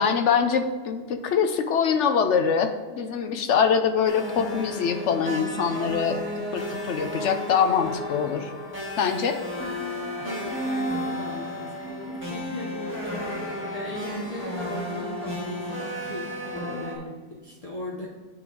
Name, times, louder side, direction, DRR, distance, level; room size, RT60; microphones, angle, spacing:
voice 1, 0.0-8.5 9.0-9.4, left 6 dB, 60° left, 8 dB, 0.8 m, -24 dB
sound 1, 4.0-16.9, equal, 10° right, 1.6 m, -33 dB
voice 2, 10.2-18.1, left 1 dB, 30° left, -5 dB, 0.9 m, -38 dB
9.2 x 3.9 x 4.7 m, 1.4 s
omnidirectional pair, 1.6 m